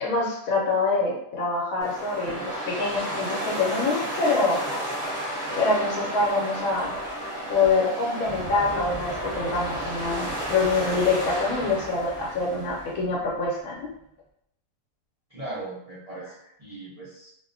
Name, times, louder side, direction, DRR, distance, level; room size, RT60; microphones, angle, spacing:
voice 1, 0.0-4.6 5.6-7.0 7.5-13.7, left 3 dB, 80° left, -4 dB, 1.0 m, -25 dB
sound 1, 1.8-13.0, equal, 30° right, 0.9 m, -32 dB
sound 2, 8.3-14.1, equal, 20° left, 0.9 m, -43 dB
voice 2, 15.3-17.4, right 2 dB, 70° right, -8 dB, 0.3 m, -38 dB
2.3 x 2.1 x 2.5 m, 0.78 s
omnidirectional pair, 1.5 m